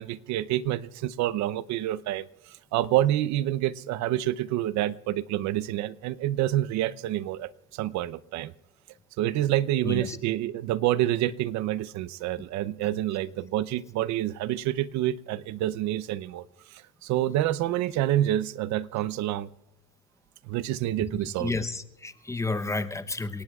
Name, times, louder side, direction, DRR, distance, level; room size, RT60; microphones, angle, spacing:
voice 1, 0.0-8.5 9.2-16.5 16.7-19.5 20.4-21.5, right 13 dB, 65° right, 18 dB, 0.7 m, -28 dB
voice 2, 9.8-10.2 21.2-23.4, left 3 dB, 10° left, 11 dB, 0.7 m, -31 dB
29.5 x 18.0 x 2.4 m, 0.97 s
cardioid pair, 120°, 31 cm